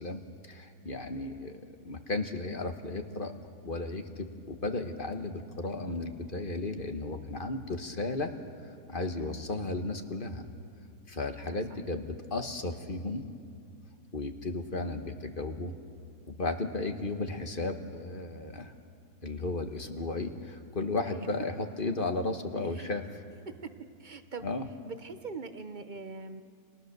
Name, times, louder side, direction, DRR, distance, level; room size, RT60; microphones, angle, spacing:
voice 1, 0.0-3.3 3.6-8.3 8.9-10.5 11.1-13.3 14.1-15.7 16.3-18.7 19.2-23.0 24.4-24.6, left 2 dB, 35° left, 6 dB, 1.4 m, -34 dB
voice 2, 9.1-9.5 11.4-11.8 21.0-21.3 22.7-22.9 23.5-23.7 24.0-24.5 24.8-26.4, right 4 dB, 35° right, 9 dB, 0.9 m, -42 dB
29.5 x 22.5 x 6.8 m, 2.5 s
omnidirectional pair, 1.7 m